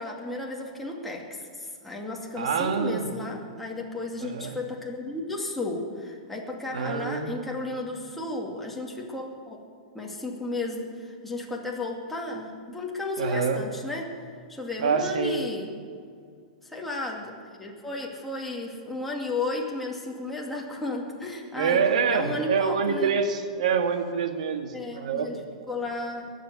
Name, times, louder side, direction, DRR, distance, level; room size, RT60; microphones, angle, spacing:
voice 1, 0.0-9.6 9.9-14.2 14.5-15.7 16.6-23.2 24.7-26.3, left 2 dB, 5° left, -2 dB, 2.3 m, -34 dB
voice 2, 2.4-3.1 4.2-4.5 6.7-7.3 13.2-13.6 14.8-15.3 21.6-25.3, right 6 dB, 75° right, 6 dB, 1.7 m, -26 dB
21.5 x 7.6 x 8.2 m, 2.2 s
hypercardioid pair, 140°, 4 cm